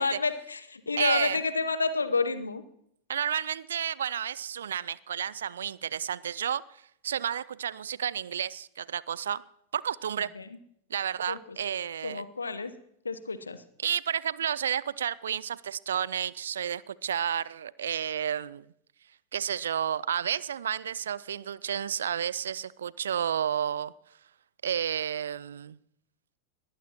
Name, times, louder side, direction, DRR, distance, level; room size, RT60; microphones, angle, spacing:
voice 1, 0.0-2.6 10.3-10.5 11.3-11.6 12.0-12.7 13.0-13.6, left 4 dB, 75° left, 13 dB, 0.9 m, -29 dB
voice 2, 1.0-1.4 3.1-6.6 7.0-9.4 9.7-10.3 10.9-12.2 13.8-18.6 19.3-23.9 24.6-25.8, right 9 dB, 65° right, 22 dB, 0.4 m, -31 dB
21.0 x 15.0 x 3.0 m, 0.74 s
figure-of-eight pair, 90°, 0 cm